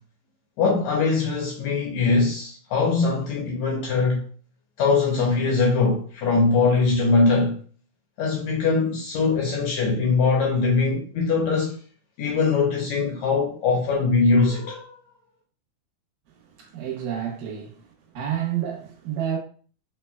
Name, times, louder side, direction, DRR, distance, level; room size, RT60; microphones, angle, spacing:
voice 1, 0.6-4.2 4.8-7.6 8.2-11.7 12.2-14.9, left 4 dB, 75° left, 1.7 m, -22 dB
voice 2, 16.6-17.9 18.1-19.4, right 10 dB, 75° right, 2.3 m, -29 dB
5.7 x 2.2 x 2.2 m
omnidirectional pair, 3.6 m